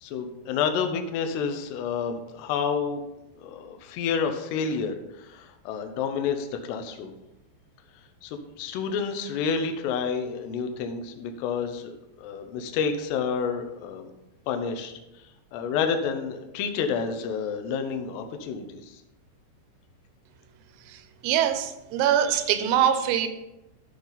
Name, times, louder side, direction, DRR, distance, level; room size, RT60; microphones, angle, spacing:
voice 1, 0.0-3.0 3.4-7.1 8.2-14.1 14.5-14.9 15.5-18.9, left 6 dB, 80° left, 6 dB, 2.5 m, -29 dB
voice 2, 21.2-23.3, right 9 dB, 85° right, 9 dB, 3.5 m, -23 dB
11.5 x 6.7 x 4.0 m, 0.94 s
omnidirectional pair, 5.9 m